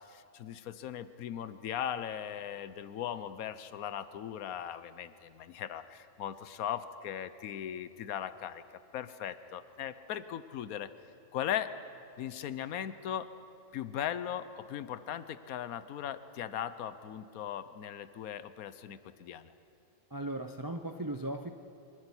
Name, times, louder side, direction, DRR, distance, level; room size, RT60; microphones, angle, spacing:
voice 1, 0.0-8.6 8.9-10.9 11.3-11.7 12.2-13.3 13.7-19.5, left 10 dB, 80° left, 13 dB, 1.2 m, -38 dB
voice 2, 20.1-21.5, right 1 dB, 25° right, 6 dB, 0.4 m, -37 dB
25.0 x 11.5 x 9.8 m, 2.7 s
omnidirectional pair, 1.5 m